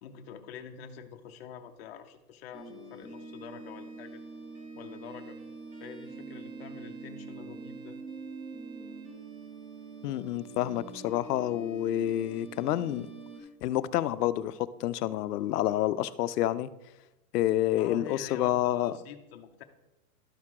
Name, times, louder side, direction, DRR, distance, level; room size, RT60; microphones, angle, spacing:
voice 1, 0.0-4.2 4.7-5.4 5.8-8.0 17.8-19.6, left 7 dB, 40° left, 6 dB, 0.6 m, -46 dB
sound 1, 2.5-13.4, right 3 dB, 20° right, 1.1 m, -44 dB
voice 2, 10.0-13.1 13.6-16.7 17.3-18.9, left 13 dB, 90° left, 15 dB, 0.6 m, -28 dB
12.0 x 4.7 x 3.6 m, 0.98 s
supercardioid pair, 170°, 46 cm